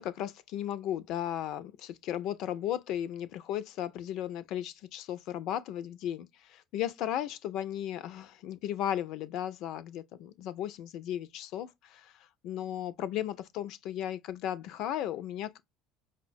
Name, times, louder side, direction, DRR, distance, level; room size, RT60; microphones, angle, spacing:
voice 1, 0.0-15.6, left 11 dB, 55° left, 0.4 m, -35 dB
5.4 x 2.1 x 2.5 m
figure-of-eight pair, 60°, 0 cm